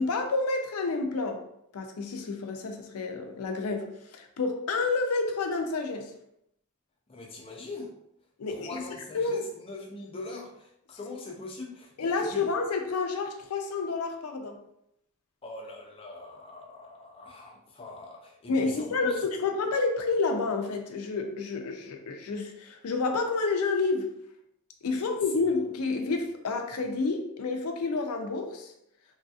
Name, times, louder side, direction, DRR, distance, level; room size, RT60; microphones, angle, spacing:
voice 1, 0.0-1.4 1.7-6.1 8.4-8.9 9.1-9.4 12.0-14.6 18.5-24.1 24.8-28.7, left 3 dB, 80° left, 5 dB, 0.5 m, -29 dB
voice 2, 7.1-7.9 8.5-12.5 15.4-19.2 24.9-25.1, left 3 dB, 25° left, 1 dB, 0.4 m, -42 dB
3.1 x 2.7 x 2.3 m, 0.77 s
head